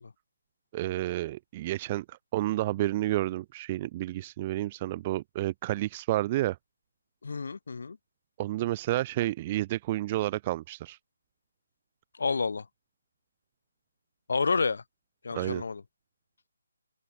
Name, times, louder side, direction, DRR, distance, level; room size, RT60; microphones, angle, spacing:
voice 1, 0.7-6.6 8.4-11.0 15.3-15.6, right 15 dB, 15° right, 3.3 m, -30 dB
voice 2, 7.2-8.0 12.1-12.7 14.3-14.8 15.2-15.8, left 4 dB, 50° left, 4.3 m, -29 dB
open air
hypercardioid pair, 180°, 0 cm